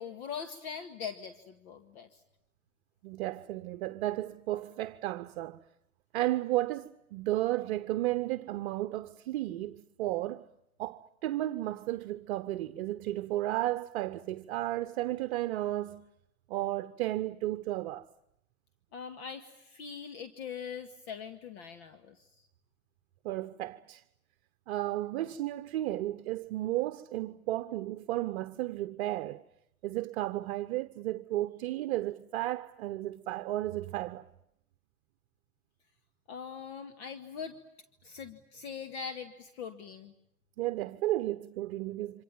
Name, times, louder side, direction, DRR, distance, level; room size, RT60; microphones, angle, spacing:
voice 1, 0.0-2.2 18.9-22.5 36.3-37.6 38.0-40.1, left 7 dB, 45° left, 2.0 m, -42 dB
voice 2, 3.0-5.6 6.1-10.5 10.8-16.0 16.5-18.1 23.2-24.0 24.7-29.4 29.8-34.3 40.6-42.2, right 15 dB, 45° right, 1.0 m, -33 dB
28.5 x 25.5 x 7.4 m
hypercardioid pair, 120°, 43 cm